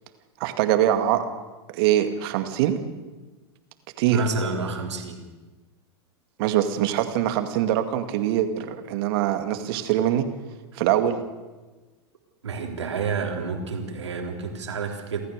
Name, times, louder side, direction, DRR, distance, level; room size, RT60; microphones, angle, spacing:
voice 1, 0.4-1.3 1.7-2.8 4.0-4.2 6.4-10.3 10.8-11.2, right 11 dB, 60° right, 8 dB, 2.2 m, -23 dB
voice 2, 4.1-5.2 10.7-10.8 12.4-15.2, right 4 dB, 85° right, 2 dB, 3.6 m, -29 dB
29.5 x 13.5 x 6.7 m, 1.2 s
hypercardioid pair, 100°, 14 cm